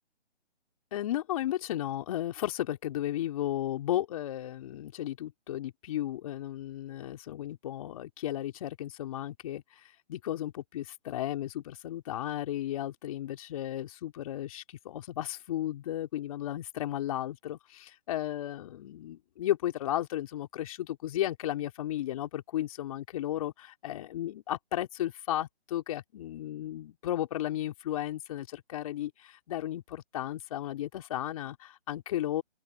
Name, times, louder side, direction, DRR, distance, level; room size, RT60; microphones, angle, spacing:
voice 1, 0.9-9.8 10.1-32.4, left 13 dB, 30° left, 3.2 m, -34 dB
open air
hypercardioid pair, 155°, 34 cm